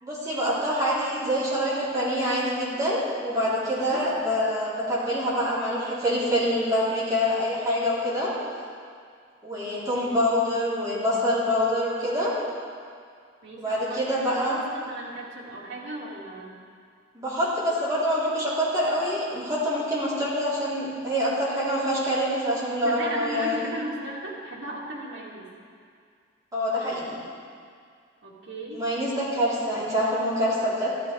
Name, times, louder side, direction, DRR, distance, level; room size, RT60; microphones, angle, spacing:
voice 1, 0.0-8.3 9.4-12.3 13.6-14.6 17.1-23.6 26.5-27.2 28.7-30.9, equal, 20° right, -10 dB, 3.8 m, -26 dB
voice 2, 3.6-4.0 13.4-16.5 22.8-25.5 28.2-28.8, right 1 dB, 85° right, -6 dB, 2.5 m, -36 dB
14.5 x 13.0 x 3.5 m, 2.2 s
head